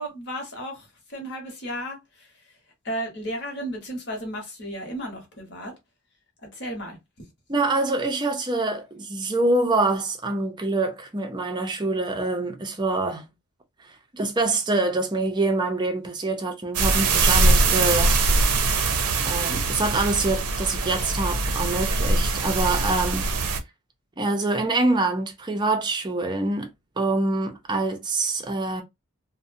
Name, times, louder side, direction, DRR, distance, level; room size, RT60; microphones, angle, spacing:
voice 1, 0.0-2.3 2.8-5.7 6.4-7.0, equal, 50° left, 1.1 m, -34 dB
voice 2, 7.5-13.3 14.1-18.2 19.2-23.3 24.2-26.7 27.0-28.8, right 2 dB, 20° right, 0.5 m, -25 dB
sound 1, 16.7-23.6, right 3 dB, 80° right, 0.6 m, -22 dB
2.6 x 2.1 x 2.6 m
head